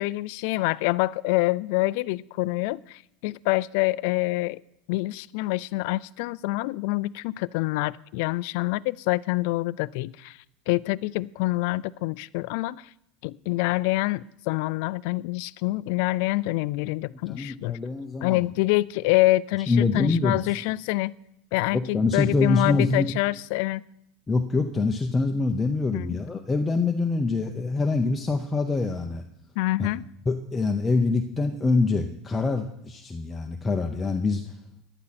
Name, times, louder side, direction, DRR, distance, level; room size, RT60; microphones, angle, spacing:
voice 1, 0.0-4.6 4.9-10.4 10.7-12.9 13.2-17.8 18.2-21.1 21.5-23.8 25.9-26.2 29.6-30.0, left 20 dB, 60° left, 0.3 m, -26 dB
voice 2, 17.3-18.5 19.7-20.4 21.7-23.1 24.3-29.2 29.8-29.9 30.3-34.5, left 3 dB, 10° left, 0.6 m, -25 dB
14.5 x 11.0 x 4.2 m
supercardioid pair, 165°, 0 cm